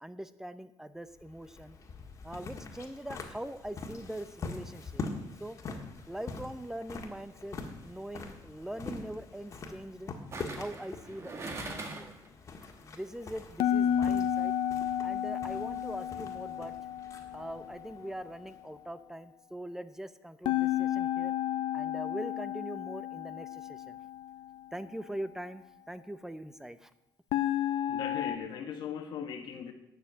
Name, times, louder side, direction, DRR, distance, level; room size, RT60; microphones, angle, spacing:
voice 1, 0.0-1.8 2.2-5.0 5.4-5.6 6.1-10.1 10.6-12.1 12.8-14.5 15.0-16.7 17.3-21.3 21.7-24.0 24.7-26.9, right 1 dB, 5° right, 13 dB, 0.6 m, -42 dB
sound 1, 1.1-18.8, left 4 dB, 40° left, 1.7 m, -44 dB
sound 2, 7.7-8.0 10.3-12.3 12.6-12.7, right 3 dB, 35° right, 1.7 m, -42 dB
sound 3, 13.6-17.7 20.5-24.6 27.3-28.4, left 10 dB, 85° left, 0.5 m, -31 dB
voice 2, 27.9-29.7, left 7 dB, 70° left, 5 dB, 1.2 m, -38 dB
10.0 x 6.6 x 7.9 m, 0.82 s
cardioid pair, 120°, 8 cm